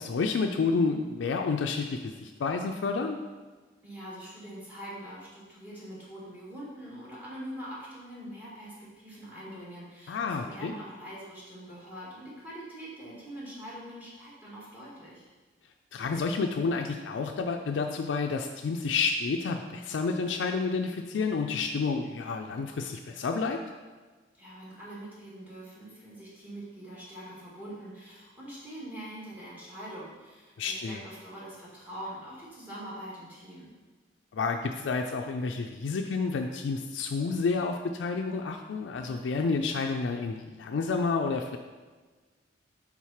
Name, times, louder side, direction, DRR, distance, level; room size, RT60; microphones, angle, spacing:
voice 1, 0.0-3.2 10.1-10.7 15.9-23.6 30.6-31.0 34.3-41.6, left 4 dB, 85° left, 4 dB, 0.4 m, -30 dB
voice 2, 3.8-15.3 24.3-33.7, right 1 dB, 10° right, -7 dB, 1.8 m, -43 dB
4.7 x 3.7 x 5.6 m, 1.4 s
head